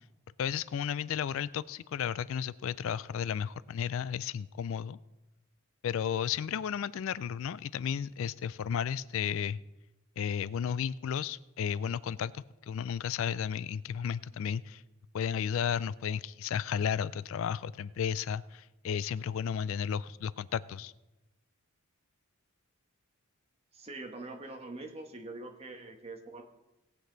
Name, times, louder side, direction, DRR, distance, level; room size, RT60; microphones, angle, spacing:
voice 1, 0.4-5.0 5.8-9.6 10.2-14.8 15.1-20.9, left 8 dB, 65° left, 0.3 m, -33 dB
voice 2, 23.7-26.4, right 2 dB, 25° right, 1.3 m, -44 dB
18.0 x 8.1 x 3.9 m
head